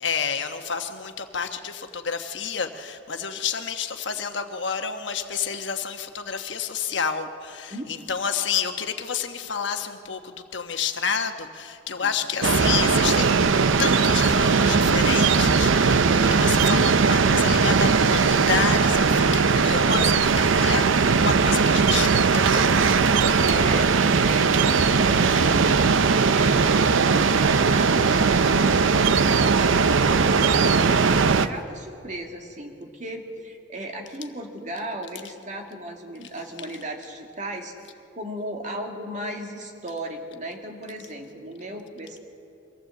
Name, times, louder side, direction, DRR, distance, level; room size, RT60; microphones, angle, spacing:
voice 1, 0.0-23.1, left 6 dB, 65° left, 6 dB, 1.2 m, -29 dB
voice 2, 7.7-8.1 11.9-12.1 23.5-29.0 29.3-37.7 38.1-42.2, right 1 dB, 40° right, 2 dB, 2.0 m, -36 dB
sound 1, 12.4-31.5, right 5 dB, 80° right, 0.6 m, -19 dB
23.5 x 15.5 x 7.8 m, 2.7 s
head